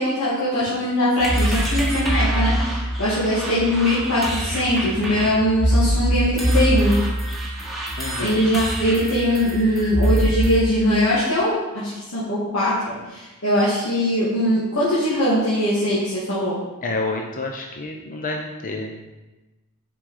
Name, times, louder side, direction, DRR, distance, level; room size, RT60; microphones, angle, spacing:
voice 1, 0.0-7.0 8.2-16.6, equal, 90° left, -10 dB, 2.2 m, -21 dB
sound 1, 1.2-10.6, right 1 dB, ahead, 1.3 m, -23 dB
voice 2, 8.0-8.4 16.8-18.9, left 2 dB, 40° left, 1 dB, 0.7 m, -29 dB
7.3 x 5.3 x 4.8 m, 1.1 s
head